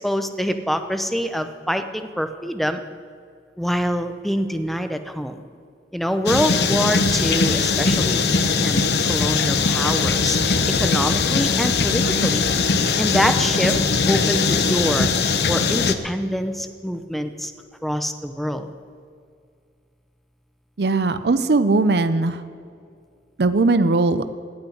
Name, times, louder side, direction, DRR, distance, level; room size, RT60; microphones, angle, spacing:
voice 1, 0.0-2.8 3.6-5.4 5.9-12.5 13.0-13.8 14.1-15.1 15.5-17.5 17.8-18.7, equal, ahead, 8 dB, 0.7 m, -25 dB
sound 1, 6.3-15.9, left 4 dB, 65° left, 0.8 m, -20 dB
voice 2, 20.8-22.4 23.4-24.2, right 3 dB, 65° right, 12 dB, 0.6 m, -19 dB
17.5 x 6.2 x 10.0 m, 2.3 s
head